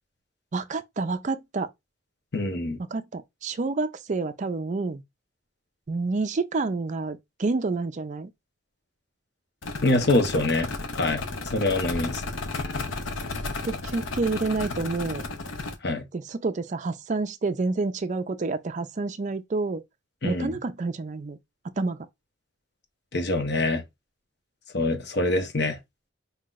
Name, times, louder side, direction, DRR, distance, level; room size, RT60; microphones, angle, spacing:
voice 1, 0.5-1.7 2.9-5.0 5.9-8.3 13.6-15.2 16.1-19.8 20.2-21.4 21.8-22.1, right 3 dB, 40° right, 0.4 m, -28 dB
voice 2, 2.3-2.8 9.8-10.7 11.0-12.2 15.8-16.0 20.2-20.6 23.1-23.8 24.7-25.8, left 2 dB, 55° left, 0.8 m, -25 dB
sound 1, 9.6-15.7, left 3 dB, 80° left, 0.8 m, -33 dB
5.6 x 2.8 x 2.4 m
head